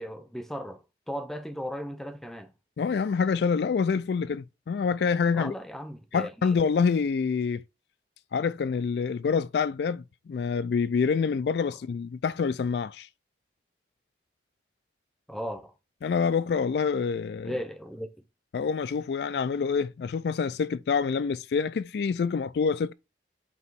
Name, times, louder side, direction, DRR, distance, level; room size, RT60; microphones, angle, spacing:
voice 1, 0.0-2.5 5.3-6.6 15.3-15.7 17.4-18.1, equal, ahead, 0.6 m, -36 dB
voice 2, 2.8-5.5 6.1-7.6 8.3-13.1 16.0-17.6 18.5-22.9, left 5 dB, 70° left, 0.3 m, -26 dB
8.2 x 3.0 x 4.5 m
head